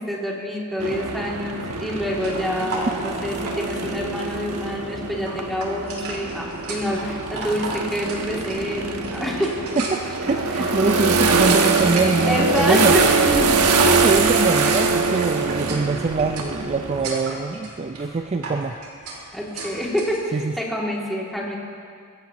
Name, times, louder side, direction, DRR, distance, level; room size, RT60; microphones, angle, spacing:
voice 1, 0.1-9.6 10.6-10.7 12.3-13.5 19.3-21.5, equal, ahead, -5 dB, 2.5 m, -27 dB
sound 1, 0.8-17.1, right 4 dB, 90° right, 1.1 m, -23 dB
sound 2, 2.2-20.2, right 2 dB, 75° right, 2.9 m, -35 dB
voice 2, 9.8-13.0 13.8-18.8 20.3-20.5, right 4 dB, 30° right, 5 dB, 0.4 m, -23 dB
24.0 x 16.0 x 3.0 m, 2.2 s
head